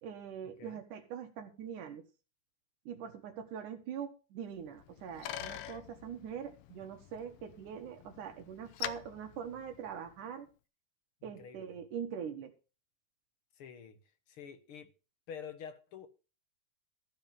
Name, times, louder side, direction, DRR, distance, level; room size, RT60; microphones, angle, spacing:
voice 1, 0.0-2.0 2.9-10.5 11.2-12.5, right 8 dB, 80° right, 3.0 m, -43 dB
Bicycle, 4.6-10.3, left 11 dB, 75° left, 1.4 m, -46 dB
voice 2, 11.2-11.8 13.6-14.0 14.3-14.9 15.3-16.1, left 7 dB, 55° left, 1.8 m, -48 dB
14.5 x 5.1 x 9.1 m
omnidirectional pair, 3.5 m